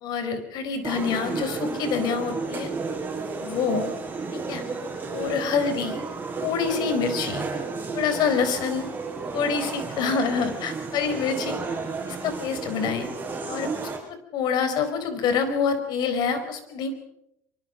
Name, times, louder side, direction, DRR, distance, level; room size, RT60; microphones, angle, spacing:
voice 1, 0.0-2.7 3.4-3.9 4.3-4.6 5.1-6.0 6.4-7.5 7.9-8.8 9.3-11.6 12.1-13.1 13.5-16.9, left 6 dB, 60° left, 9 dB, 4.7 m, -26 dB
sound 1, 0.8-14.0, right 4 dB, 25° right, 7.9 m, -32 dB
24.5 x 24.0 x 5.3 m, 0.79 s
hypercardioid pair, 80°, 8 cm